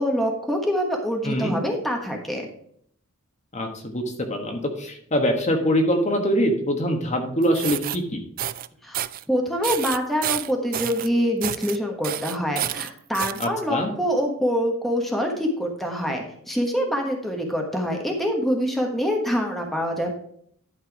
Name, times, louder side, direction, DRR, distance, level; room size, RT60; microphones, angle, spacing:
voice 1, 0.0-2.5 8.8-9.0 9.3-20.1, equal, ahead, 1 dB, 1.2 m, -25 dB
voice 2, 1.2-1.6 3.5-4.0 4.3-8.2 13.4-13.9, equal, 35° left, 3 dB, 1.3 m, -23 dB
sound 1, 7.4-8.0 8.4-8.7 8.9-9.2 9.6-11.1 11.4-11.8 12.0-13.5, right 12 dB, 40° right, 0.3 m, -29 dB
11.5 x 4.6 x 4.7 m, 0.65 s
head